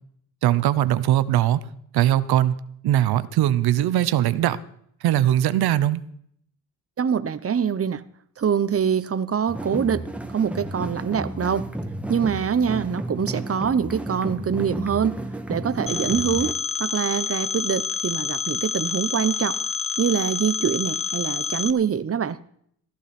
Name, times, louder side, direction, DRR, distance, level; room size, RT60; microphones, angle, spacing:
voice 1, 0.4-1.6 1.9-4.6 5.0-6.0, right 12 dB, 80° right, 0.9 m, -20 dB
voice 2, 7.0-8.0 8.4-11.7 12.1-15.2 15.5-19.6 20.0-22.4, right 7 dB, 40° right, 1.0 m, -24 dB
sound 1, 9.5-16.5, right 1 dB, 5° right, 2.1 m, -32 dB
Telephone, 15.9-21.7, left 6 dB, 35° left, 1.1 m, -28 dB
15.0 x 14.5 x 4.4 m
cardioid pair, 75°, 37 cm